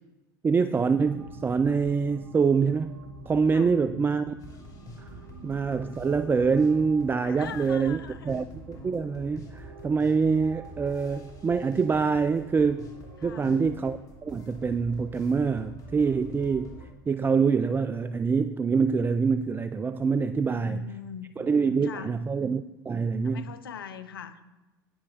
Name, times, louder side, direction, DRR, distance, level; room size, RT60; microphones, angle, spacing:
voice 1, 0.4-3.0 3.3-4.3 5.4-8.0 8.3-12.9 13.2-16.7 17.1-20.9 21.4-23.4, right 5 dB, 20° right, 13 dB, 0.4 m, -25 dB
sound 1, 0.9-15.7, right 3 dB, 55° right, 1.8 m, -49 dB
sound 2, 4.4-16.9, left 1 dB, 30° left, 2.8 m, -46 dB
voice 2, 7.2-8.5 13.2-13.6 20.3-21.3 21.5-22.1 23.2-24.4, left 8 dB, 80° left, 11 dB, 0.8 m, -42 dB
9.4 x 9.3 x 4.0 m, 1.1 s
hypercardioid pair, 85°, 12 cm